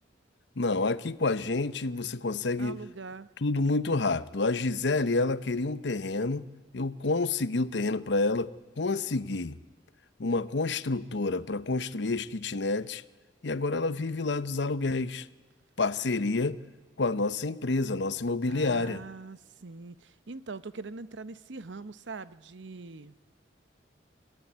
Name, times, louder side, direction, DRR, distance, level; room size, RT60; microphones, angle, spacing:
voice 1, 0.6-2.8 3.4-6.4 6.7-9.6 10.2-13.0 13.4-15.3 15.8-16.6 17.0-19.0, left 3 dB, 70° left, 0.8 m, -28 dB
voice 2, 2.6-3.3 18.5-23.1, right 3 dB, 75° right, 0.8 m, -42 dB
26.5 x 15.5 x 9.4 m
head